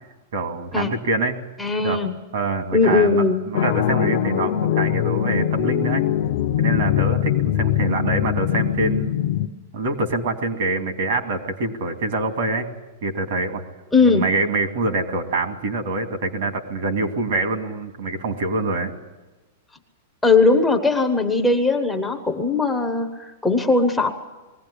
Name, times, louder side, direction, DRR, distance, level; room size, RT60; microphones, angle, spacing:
voice 1, 0.3-1.4 1.8-2.0 2.3-6.1 6.6-9.2 9.7-12.7 13.0-13.6 14.0-18.9, right 2 dB, 55° right, 6 dB, 2.5 m, -25 dB
voice 2, 1.6-2.1 2.7-3.4 13.9-14.2 20.2-24.1, left 3 dB, 5° left, 4 dB, 0.8 m, -19 dB
sound 1, 3.5-9.5, left 11 dB, 40° left, 0.7 m, -22 dB
21.0 x 16.5 x 10.0 m, 1.2 s
supercardioid pair, 180°, 0 cm